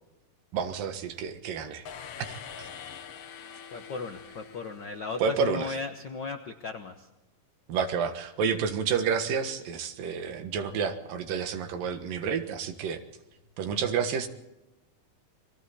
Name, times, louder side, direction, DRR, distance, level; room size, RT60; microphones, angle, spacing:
voice 1, 0.5-1.9 2.2-2.7 5.2-5.7 7.7-13.0 13.6-14.3, right 6 dB, 90° right, 8 dB, 3.1 m, -30 dB
sound 1, 1.8-5.7, left 7 dB, 60° left, 2.0 m, -45 dB
voice 2, 3.7-7.1, left 4 dB, 80° left, 6 dB, 1.0 m, -36 dB
30.0 x 22.5 x 4.2 m, 0.96 s
omnidirectional pair, 3.8 m